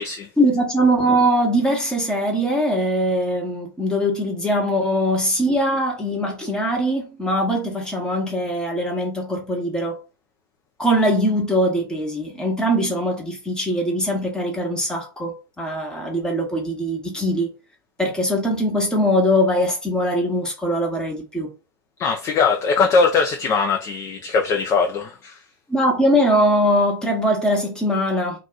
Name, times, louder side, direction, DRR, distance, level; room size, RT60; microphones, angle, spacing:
voice 1, 0.4-10.0 10.8-17.5 18.0-21.5 25.7-28.4, equal, 5° left, 1.0 m, -21 dB
voice 2, 22.0-25.4, left 5 dB, 25° left, 0.4 m, -20 dB
2.3 x 2.3 x 3.8 m
figure-of-eight pair, 95°, 12 cm